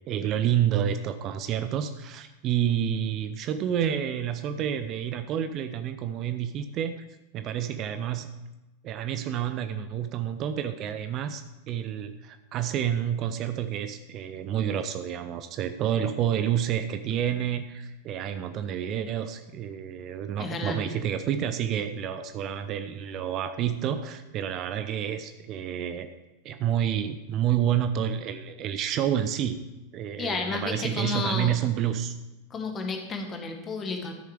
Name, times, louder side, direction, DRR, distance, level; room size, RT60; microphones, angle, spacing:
voice 1, 0.1-7.1 7.3-8.3 8.8-26.1 26.4-29.6 29.9-32.1, right 9 dB, 35° right, 9 dB, 0.5 m, -29 dB
voice 2, 20.4-20.8 30.2-31.5 32.5-34.1, left 4 dB, 25° left, 4 dB, 1.6 m, -31 dB
12.5 x 6.7 x 4.8 m, 1.0 s
figure-of-eight pair, 90°, 0 cm